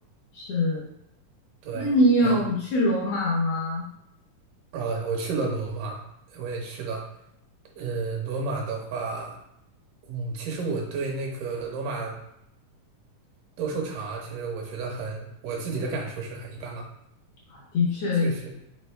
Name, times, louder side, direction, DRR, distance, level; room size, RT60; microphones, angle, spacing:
voice 1, 0.3-0.9 1.7-3.8 17.5-18.3, left 1 dB, 70° left, -4 dB, 1.5 m, -23 dB
voice 2, 1.6-1.9 2.2-2.4 4.7-6.0 6.3-7.1 7.8-9.4 10.1-12.2 13.6-16.9 18.1-18.5, right 4 dB, 80° right, 0 dB, 2.2 m, -31 dB
5.3 x 3.9 x 2.2 m, 0.80 s
omnidirectional pair, 3.8 m